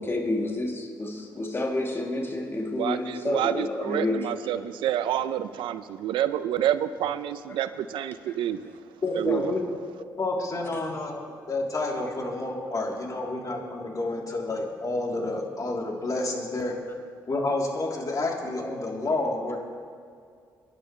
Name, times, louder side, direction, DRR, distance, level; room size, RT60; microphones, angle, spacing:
voice 1, 0.0-4.4 8.3-8.4, left 2 dB, 30° left, 0 dB, 2.8 m, -29 dB
voice 2, 2.8-8.8 9.2-9.6, right 11 dB, 80° right, 13 dB, 0.6 m, -28 dB
voice 3, 9.0-9.6 10.2-16.7 17.3-19.6, left 2 dB, 45° left, -1 dB, 3.3 m, -29 dB
25.0 x 11.0 x 3.3 m, 2.2 s
supercardioid pair, 50°, 8 cm